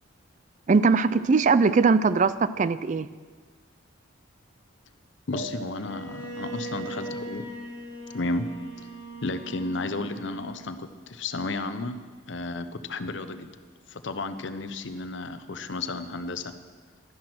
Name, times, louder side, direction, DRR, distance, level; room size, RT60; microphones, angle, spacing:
voice 1, 0.7-3.1, right 4 dB, 35° right, 15 dB, 0.4 m, -21 dB
voice 2, 5.3-7.4 8.1-8.5 8.8-8.9 9.2-12.0 12.3-13.5 13.9-16.5, left 2 dB, 60° left, 10 dB, 0.8 m, -33 dB
sound 1, 5.3-8.3, right 1 dB, 20° left, 1.2 m, -44 dB
Bowed string instrument, 5.8-10.8, right 2 dB, 70° right, 2.5 m, -39 dB
12.5 x 10.5 x 6.1 m, 1.5 s
head